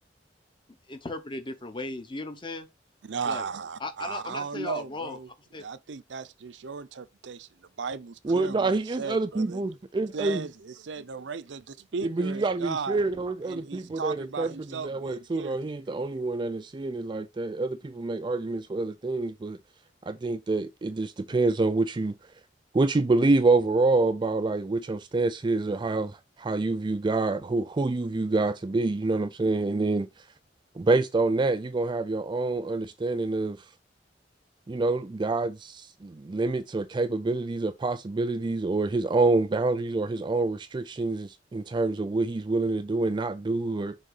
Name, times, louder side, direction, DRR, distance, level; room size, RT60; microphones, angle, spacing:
voice 1, 0.9-2.7 3.2-3.5 3.8-5.2 5.5-5.6, left 2 dB, 30° left, 1.0 m, -36 dB
voice 2, 3.0-5.3 5.6-7.5 7.8-9.6 10.1-13.0 13.4-15.6, right 5 dB, 85° right, 0.6 m, -36 dB
voice 3, 8.2-10.5 12.0-19.6 20.0-22.1 22.7-30.1 30.8-33.6 34.7-44.0, right 3 dB, 25° right, 0.4 m, -27 dB
6.4 x 3.7 x 5.5 m
head